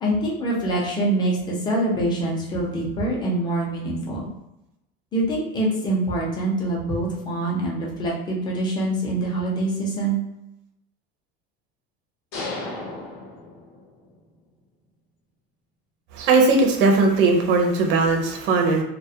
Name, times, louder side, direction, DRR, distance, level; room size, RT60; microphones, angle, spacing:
voice 1, 0.0-4.3 5.1-10.2, right 1 dB, 15° left, -4 dB, 0.5 m, -25 dB
sound 1, 12.3-14.1, left 2 dB, 70° left, 0.9 m, -34 dB
voice 2, 16.1-18.8, right 3 dB, 40° right, 2 dB, 0.4 m, -18 dB
2.2 x 2.0 x 2.7 m, 0.89 s
cardioid pair, 160°, 29 cm